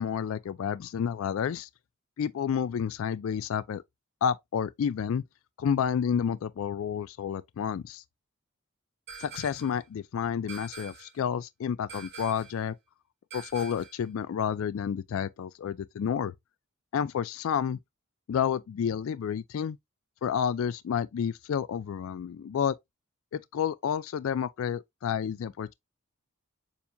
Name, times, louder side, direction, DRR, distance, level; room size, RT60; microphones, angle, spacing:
voice 1, 0.0-1.7 2.2-3.8 4.2-5.2 5.6-8.0 9.2-12.8 13.3-16.3 16.9-17.8 18.3-19.8 20.2-22.7 23.3-25.7, left 7 dB, 70° left, 0.3 m, -30 dB
sound 1, 9.1-9.8 10.5-11.2 11.9-12.6 13.3-14.0, right 5 dB, 50° right, 1.6 m, -45 dB
6.9 x 2.7 x 2.2 m
head